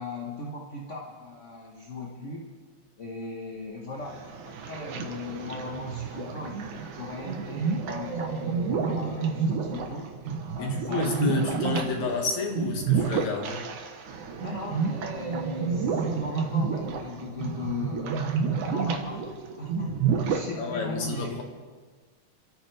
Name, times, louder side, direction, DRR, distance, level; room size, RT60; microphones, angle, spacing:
voice 1, 0.0-2.5 3.0-10.1 10.5-11.6 14.4-18.2 18.7-19.3 19.6-21.4, left 3 dB, 40° left, -2 dB, 1.0 m, -38 dB
sound 1, 3.9-20.5, right 5 dB, 90° right, 2.7 m, -30 dB
voice 2, 10.6-13.7 20.6-21.4, left 4 dB, 75° left, 1 dB, 3.2 m, -30 dB
29.0 x 13.5 x 3.4 m, 1.4 s
omnidirectional pair, 3.3 m